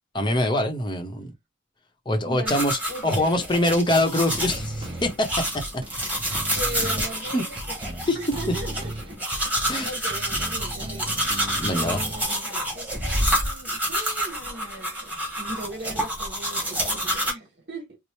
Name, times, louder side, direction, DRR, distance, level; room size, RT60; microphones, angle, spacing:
voice 1, 0.1-1.3 2.1-5.3 7.3-7.4 8.1-8.2 9.7-9.9 11.6-12.0, left 1 dB, 20° left, 0.7 m, -24 dB
voice 2, 2.2-3.4 6.5-11.1 11.7-18.0, right 2 dB, 55° right, 1.4 m, -39 dB
sound 1, 2.5-17.3, equal, 5° right, 1.4 m, -28 dB
sound 2, 4.3-12.3, right 1 dB, 25° right, 0.5 m, -36 dB
4.3 x 2.0 x 3.1 m
head